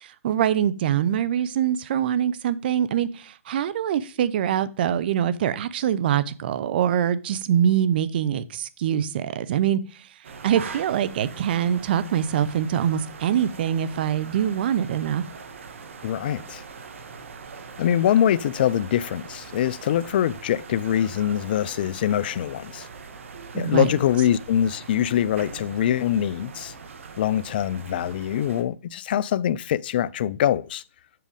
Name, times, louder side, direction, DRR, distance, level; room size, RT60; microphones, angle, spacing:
voice 1, 0.0-9.8 10.4-15.2 23.5-23.9, right 9 dB, 40° right, 0.7 m, -24 dB
sound 1, 10.2-28.6, right 5 dB, 60° right, 1.4 m, -42 dB
voice 2, 16.0-16.6 17.8-22.9 23.5-26.7 27.2-30.8, left 10 dB, 40° left, 0.4 m, -23 dB
7.6 x 5.1 x 5.0 m
hypercardioid pair, 150°, 8 cm